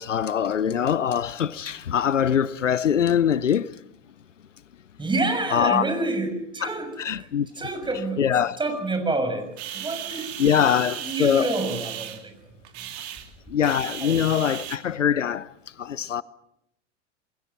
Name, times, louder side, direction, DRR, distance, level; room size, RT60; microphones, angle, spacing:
voice 1, 0.0-3.7 5.5-5.8 6.6-6.7 7.0-7.5 8.2-8.6 10.4-11.5 13.5-15.5 15.8-16.2, left 8 dB, 80° left, 0.9 m, -23 dB
voice 2, 5.0-7.3 7.6-8.2 8.6-12.3 14.0-14.5, right 2 dB, 15° right, 6.7 m, -28 dB
sound 1, 9.5-14.8, right 11 dB, 60° right, 2.9 m, -36 dB
27.5 x 21.5 x 7.4 m
figure-of-eight pair, 85°, 37 cm